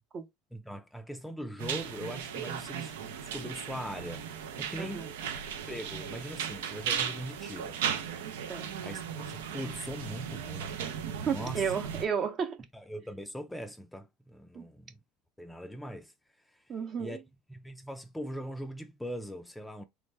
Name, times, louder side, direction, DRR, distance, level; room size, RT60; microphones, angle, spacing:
voice 1, 0.5-4.2 4.6-5.1 5.7-7.8 8.8-10.8 11.2-11.7 12.7-15.0 15.4-16.1 16.5-16.6 17.0-17.2 17.5-19.8, equal, 5° left, 0.4 m, -41 dB
sound 1, 1.6-12.1, right 8 dB, 90° right, 0.5 m, -36 dB
voice 2, 4.8-5.1 8.5-8.7 11.3-12.6 14.5-14.6 16.7-17.2, right 6 dB, 40° right, 0.7 m, -32 dB
3.4 x 2.1 x 3.2 m
supercardioid pair, 105°, 0 cm